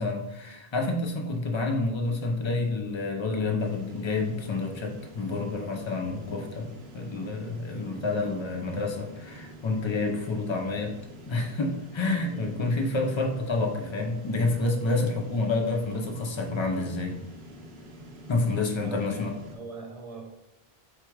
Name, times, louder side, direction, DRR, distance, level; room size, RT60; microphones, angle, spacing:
voice 1, 0.0-11.0 11.3-17.2 18.3-19.3, left 3 dB, 35° left, 2 dB, 0.5 m, -29 dB
sound 1, 3.6-19.6, equal, 85° right, 1.0 m, -47 dB
voice 2, 12.3-12.7 18.5-20.3, right 3 dB, 40° right, 2 dB, 0.7 m, -43 dB
4.7 x 2.3 x 4.6 m, 0.92 s
omnidirectional pair, 1.0 m